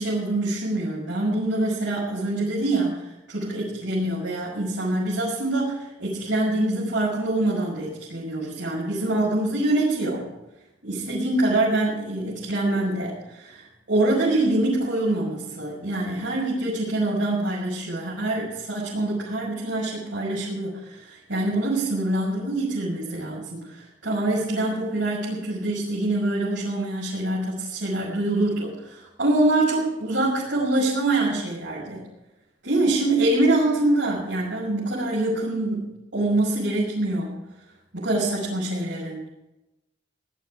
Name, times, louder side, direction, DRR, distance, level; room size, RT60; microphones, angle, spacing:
voice 1, 0.0-10.3 10.8-32.1 32.6-35.9 36.1-37.4 37.9-39.2, right 2 dB, 75° right, -7 dB, 6.2 m, -25 dB
19.0 x 11.5 x 5.0 m, 0.95 s
head